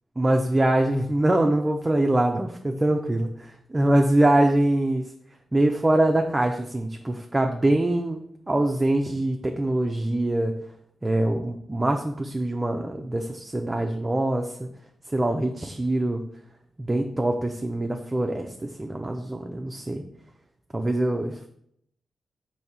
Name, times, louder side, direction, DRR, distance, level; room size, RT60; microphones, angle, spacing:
voice 1, 0.2-3.3 3.7-5.1 5.5-10.5 11.0-14.7 15.1-16.2 16.8-18.5 18.8-20.0 20.7-21.5, right 1 dB, 25° right, 3 dB, 0.4 m, -23 dB
3.5 x 2.7 x 4.1 m, 0.71 s
supercardioid pair, 50°, 0 cm